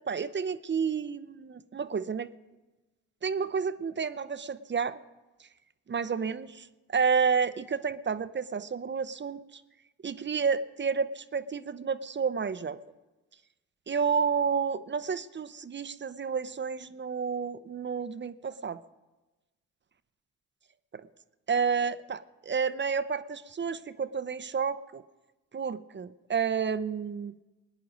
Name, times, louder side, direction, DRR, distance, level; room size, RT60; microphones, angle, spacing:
voice 1, 0.0-2.3 3.2-5.0 5.9-9.6 10.0-12.8 13.9-18.8 20.9-21.0 21.5-25.0 25.5-27.3, right 6 dB, 30° right, 15 dB, 0.7 m, -30 dB
19.5 x 10.0 x 5.1 m, 1.1 s
hypercardioid pair, 45°, 38 cm